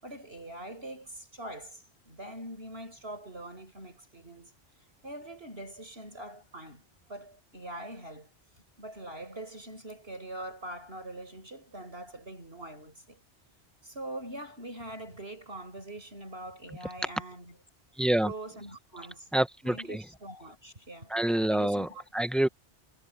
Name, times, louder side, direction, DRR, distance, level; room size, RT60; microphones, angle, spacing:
voice 1, 0.0-4.5 5.0-8.3 8.8-13.2 13.8-17.6 18.2-19.3 19.6-21.1 21.5-22.0, right 1 dB, 65° right, 7.2 m, -43 dB
voice 2, 18.0-18.3 19.3-20.0 21.1-21.9 22.1-22.5, right 1 dB, ahead, 0.9 m, -26 dB
omnidirectional pair, 1.1 m